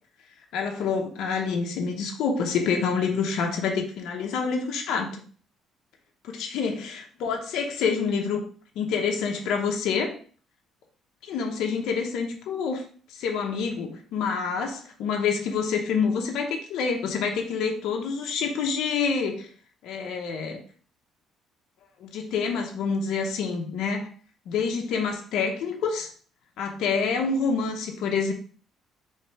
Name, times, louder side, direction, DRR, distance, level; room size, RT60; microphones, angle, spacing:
voice 1, 0.5-5.2 6.3-8.4 8.8-10.2 11.2-12.8 13.1-19.5 19.8-20.6 22.0-24.1 24.5-26.1 26.6-28.3, left 5 dB, 80° left, 2 dB, 0.8 m, -27 dB
3.2 x 3.2 x 4.5 m, 0.43 s
cardioid pair, 105°, 0 cm